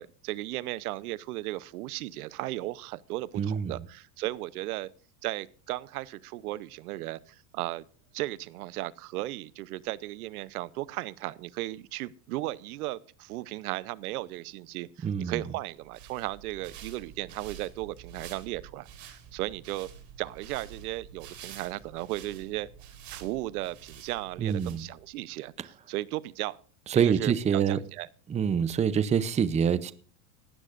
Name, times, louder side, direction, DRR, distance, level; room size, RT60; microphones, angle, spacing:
voice 1, 0.0-4.9 5.2-7.8 8.1-19.9 20.2-22.7 23.1-25.5 25.9-26.6 26.9-28.1, right 17 dB, 75° right, 0.8 m, -36 dB
voice 2, 3.4-3.8 15.0-15.4 24.4-24.9 25.6-25.7 26.9-27.8 28.3-29.9, right 7 dB, 15° right, 0.6 m, -26 dB
sound 1, 15.8-25.2, right 8 dB, 40° right, 3.8 m, -48 dB
18.0 x 13.5 x 2.5 m
supercardioid pair, 120°, 45 cm